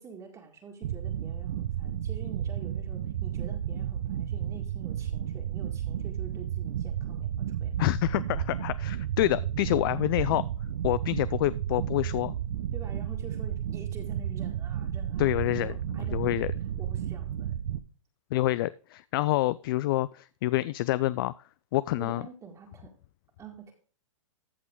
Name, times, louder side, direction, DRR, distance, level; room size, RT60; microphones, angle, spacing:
voice 1, 0.0-7.7 12.7-16.2 16.8-17.6 21.9-22.9 23.4-23.7, right 5 dB, 20° right, 1 dB, 2.0 m, -47 dB
sound 1, 0.8-17.8, right 10 dB, 60° right, 0.9 m, -32 dB
voice 2, 7.8-10.4 10.8-12.3 15.2-15.7 16.1-16.5 18.3-21.3 21.7-22.2, left 16 dB, 45° left, 18 dB, 0.4 m, -27 dB
14.0 x 6.0 x 3.7 m, 0.40 s
hypercardioid pair, 140°, 17 cm